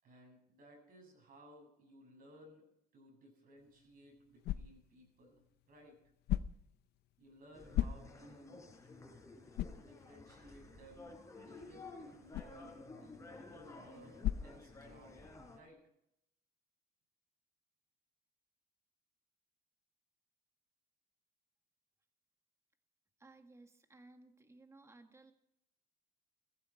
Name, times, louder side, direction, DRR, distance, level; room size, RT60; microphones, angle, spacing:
voice 1, 0.0-2.7 2.9-6.0 7.2-8.7 9.8-11.1 11.5-15.8, right 1 dB, 60° right, 1 dB, 7.6 m, -59 dB
sound 1, 3.6-15.3, left 12 dB, 75° left, 0.7 m, -43 dB
sound 2, 7.5-15.6, left 3 dB, 20° left, 4.1 m, -53 dB
voice 2, 23.2-25.3, right 2 dB, 15° right, 6 dB, 1.8 m, -59 dB
16.5 x 14.5 x 4.5 m, 0.77 s
cardioid pair, 110°, 17 cm